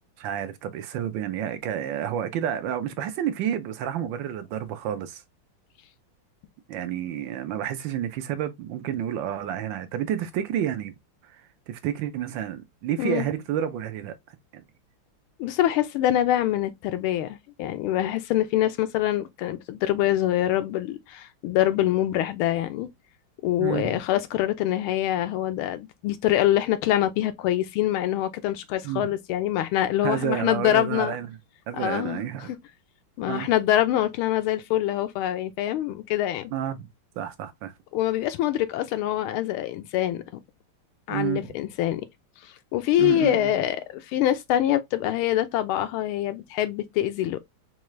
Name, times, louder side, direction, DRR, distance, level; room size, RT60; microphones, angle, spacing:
voice 1, 0.2-5.2 6.7-10.9 11.2-11.4 11.7-14.1 14.5-14.6 23.6-24.0 28.8-29.1 30.0-31.4 31.7-32.5 33.2-33.5 36.5-36.9 37.2-37.7 41.1-41.5 43.0-43.5, right 10 dB, 70° right, 1.2 m, -30 dB
voice 2, 15.4-22.9 23.4-31.2 31.8-32.2 33.2-36.5 37.9-40.2 41.1-42.0 42.7-47.4, left 13 dB, 85° left, 1.5 m, -25 dB
4.6 x 2.4 x 3.0 m
omnidirectional pair, 2.3 m